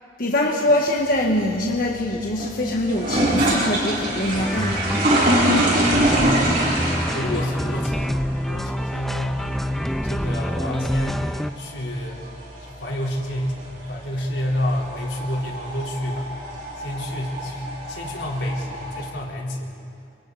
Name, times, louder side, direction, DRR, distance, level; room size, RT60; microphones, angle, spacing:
voice 1, 0.2-5.0, left 1 dB, 50° left, -1 dB, 1.6 m, -23 dB
sound 1, 0.9-19.1, right 1 dB, 50° right, 7.2 m, -26 dB
sound 2, 4.3-11.5, equal, ahead, 0.5 m, -27 dB
voice 2, 6.2-6.9 7.1-9.6 10.0-11.2 11.6-12.2 12.6-16.3 16.8-19.7, left 1 dB, 85° left, -3 dB, 4.3 m, -28 dB
29.5 x 26.5 x 4.2 m, 2.4 s
head